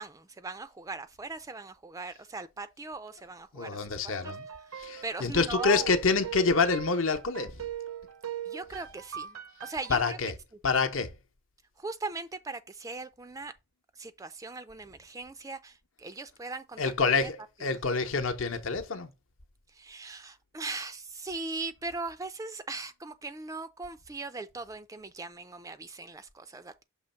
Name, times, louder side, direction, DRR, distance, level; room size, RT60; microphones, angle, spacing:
voice 1, 0.0-4.3 4.7-5.9 8.5-9.4 9.6-10.2 11.8-13.5 14.0-16.8 19.7-26.8, right 3 dB, 15° right, 0.3 m, -39 dB
voice 2, 3.5-4.5 4.8-7.7 9.9-10.3 10.6-11.2 16.8-19.1, left 4 dB, 65° left, 0.8 m, -27 dB
sound 1, 4.1-9.9, right 10 dB, 85° right, 0.7 m, -40 dB
6.4 x 3.0 x 5.6 m
head